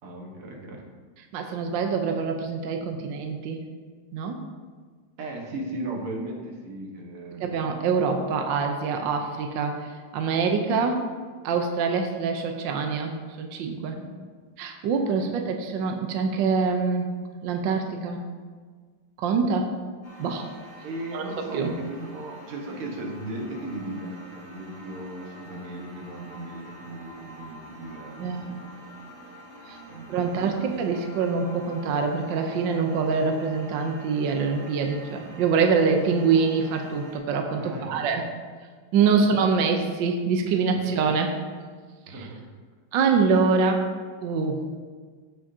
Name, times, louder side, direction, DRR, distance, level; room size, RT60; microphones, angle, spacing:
voice 1, 0.0-0.9 5.2-7.5 13.9-14.2 15.2-15.3 20.8-28.7 29.9-30.7 37.6-38.1 39.0-39.6 40.7-40.8 42.1-42.5, right 1 dB, 85° right, 0 dB, 2.3 m, -37 dB
voice 2, 1.3-3.6 4.1-4.4 7.4-11.0 11.4-13.9 14.6-17.1 17.4-18.2 19.2-19.7 20.2-20.5 21.1-21.2 21.5-21.7 28.2-28.5 29.7-29.8 30.1-38.3 38.9-41.3 42.1-42.2 42.9-43.8 44.2-44.6, right 5 dB, 70° right, 4 dB, 1.4 m, -25 dB
sound 1, 20.0-37.2, right 1 dB, 35° left, 2.1 m, -46 dB
15.0 x 6.2 x 2.8 m, 1.6 s
omnidirectional pair, 2.4 m